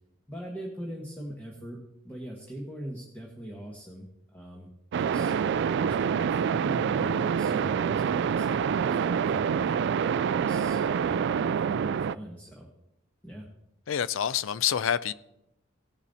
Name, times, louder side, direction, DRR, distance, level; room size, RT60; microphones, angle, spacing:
voice 1, 0.3-1.8 2.0-4.7 4.9-5.3 5.7-9.8 10.4-12.7 13.2-13.5, equal, 10° left, 1.3 m, -41 dB
sound 1, 4.9-12.1, right 7 dB, 60° right, 0.3 m, -26 dB
voice 2, 13.9-15.1, left 9 dB, 75° left, 0.4 m, -27 dB
17.5 x 7.1 x 4.1 m
head